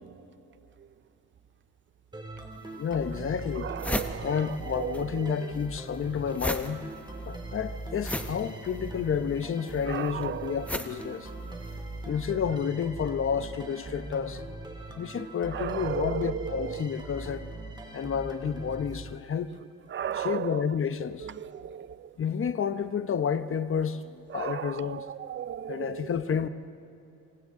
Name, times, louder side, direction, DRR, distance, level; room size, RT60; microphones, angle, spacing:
sound 1, 2.1-19.7, right 2 dB, 15° right, 2.7 m, -41 dB
sound 2, 2.5-2.6 3.2-3.3 3.5-5.0 5.3-11.9, left 1 dB, 5° left, 1.0 m, -36 dB
voice 1, 2.8-3.7 4.2-6.9 7.3-11.3 12.0-14.4 14.9-17.5 17.9-19.5 20.1-21.3 22.2-25.1 25.7-26.5, left 7 dB, 45° left, 1.0 m, -30 dB
voice 2, 3.6-4.3 4.8-5.0 9.9-10.5 15.5-16.2 16.6-16.7 19.9-20.5 21.6-21.8 24.3-25.9, right 10 dB, 40° right, 0.6 m, -34 dB
27.0 x 26.5 x 3.8 m
cardioid pair, 90°, 30 cm